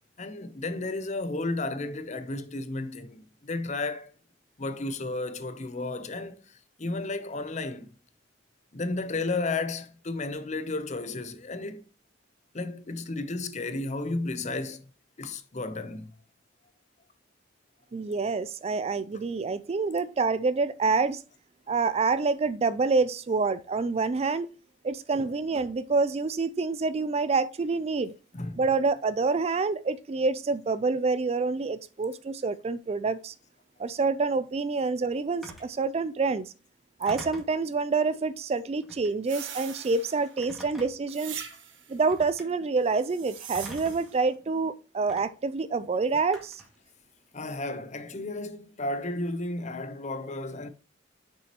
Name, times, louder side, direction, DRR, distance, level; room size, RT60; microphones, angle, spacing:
voice 1, 0.2-4.1 4.6-6.4 6.8-7.9 8.7-11.8 12.5-14.8 15.2-16.1 28.3-28.7 47.3-50.7, left 2 dB, 40° left, 0.7 m, -33 dB
voice 2, 17.9-21.2 21.7-24.5 24.8-28.1 28.6-33.3 33.8-36.5 37.0-41.4 41.9-46.6, right 4 dB, 35° right, 0.3 m, -27 dB
Telephone, 35.4-35.7 37.1-37.6 38.8-39.2 40.4-41.1 42.1-42.5 43.5-44.1 45.1-45.2 46.3-46.7, equal, ahead, 2.0 m, -44 dB
sound 1, 39.2-40.4 41.1-42.0 42.9-44.2, right 8 dB, 85° right, 1.2 m, -42 dB
7.0 x 6.2 x 2.9 m
head